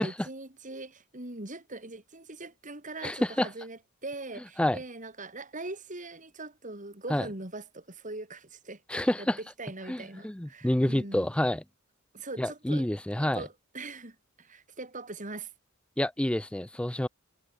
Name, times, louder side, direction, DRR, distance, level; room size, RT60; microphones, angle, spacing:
voice 1, 0.0-11.3 12.1-12.9 13.2-15.5, right 2 dB, 40° right, 4.5 m, -42 dB
voice 2, 3.0-3.5 4.6-4.8 7.1-7.3 8.9-9.4 9.9-11.6 12.4-13.4 16.0-17.1, left 1 dB, 5° left, 0.4 m, -28 dB
head